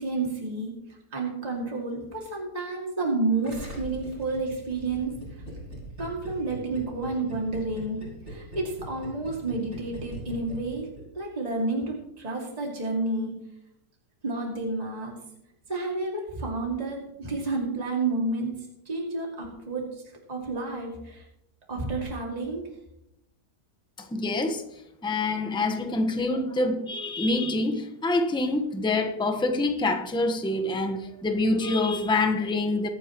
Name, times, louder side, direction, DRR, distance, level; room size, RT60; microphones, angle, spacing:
voice 1, 0.0-5.2 6.0-13.4 14.2-15.2 15.7-20.0 20.3-21.2 21.7-22.7, right 3 dB, 25° right, 2.4 m, -30 dB
Gurgling, 3.4-11.0 11.3-11.4, right 1 dB, 50° right, 6.2 m, -40 dB
voice 2, 24.1-24.6 25.0-32.9, left 2 dB, 5° left, 0.9 m, -26 dB
23.0 x 9.1 x 3.0 m
omnidirectional pair, 1.8 m